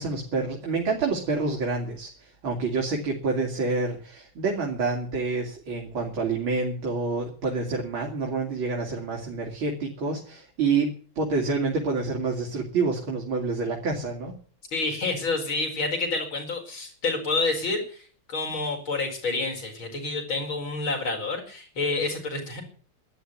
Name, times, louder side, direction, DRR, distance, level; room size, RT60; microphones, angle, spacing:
voice 1, 0.0-14.3, right 4 dB, 90° right, -1 dB, 3.7 m, -28 dB
voice 2, 14.7-22.6, left 3 dB, 90° left, 2 dB, 5.7 m, -28 dB
13.0 x 11.0 x 9.5 m, 0.43 s
omnidirectional pair, 2.2 m